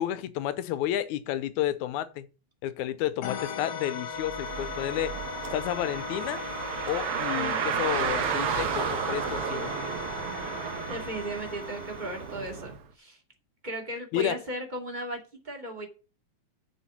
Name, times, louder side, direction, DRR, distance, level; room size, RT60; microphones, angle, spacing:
voice 1, 0.0-2.3 2.6-5.2 5.5-6.4 6.9-9.7 14.1-14.4, left 12 dB, 90° left, 2.1 m, -31 dB
sound 1, 3.2-12.7, left 5 dB, 70° left, 2.4 m, -38 dB
Car, 4.2-12.8, right 8 dB, 65° right, 1.6 m, -33 dB
voice 2, 7.1-7.6 10.3-10.6 10.9-13.2 13.6-15.9, right 1 dB, 15° right, 2.1 m, -36 dB
7.2 x 6.4 x 7.3 m
omnidirectional pair, 3.4 m